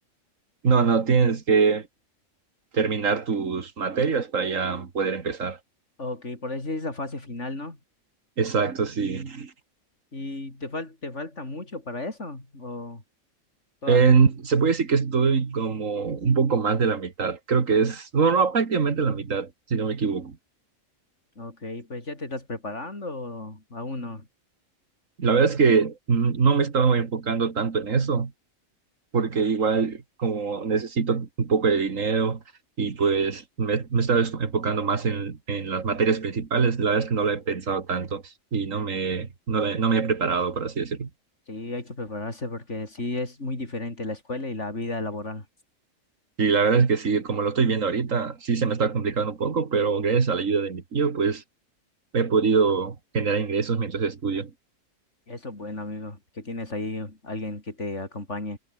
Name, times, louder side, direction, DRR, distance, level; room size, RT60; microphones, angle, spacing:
voice 1, 0.6-1.9 2.7-5.6 8.4-9.5 13.9-20.4 25.2-28.3 29.1-32.4 32.8-38.2 38.5-41.1 46.4-51.4 52.1-54.5, right 5 dB, 70° right, 2.3 m, -23 dB
voice 2, 6.0-7.8 10.1-13.0 13.8-14.2 21.4-24.3 41.5-45.5 55.3-58.6, left 2 dB, 60° left, 5.7 m, -34 dB
omnidirectional pair, 1.4 m